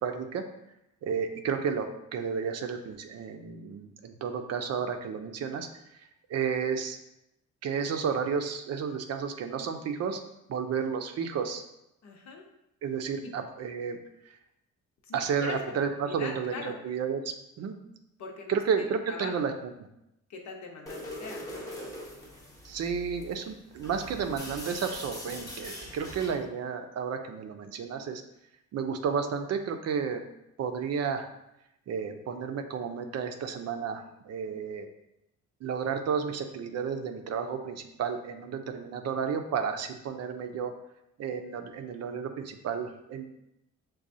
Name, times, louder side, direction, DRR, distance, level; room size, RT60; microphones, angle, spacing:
voice 1, 0.0-0.4 1.0-5.7 6.3-7.0 7.6-10.2 10.5-11.6 12.8-14.0 14.3-14.4 15.1-17.7 18.5-19.7 22.6-28.2 28.7-30.2 30.6-31.3 31.9-34.9 35.6-40.7 41.2-43.2, right 6 dB, 55° right, 6 dB, 0.5 m, -32 dB
voice 2, 12.0-12.4 13.2-13.3 15.0-15.7 16.1-16.7 18.2-19.3 20.3-21.6 26.0-26.4, left 4 dB, 65° left, 1 dB, 0.9 m, -42 dB
sound 1, 20.9-26.4, left 1 dB, 10° left, 0.9 m, -42 dB
6.0 x 2.3 x 2.6 m, 0.84 s
cardioid pair, 90°, 30 cm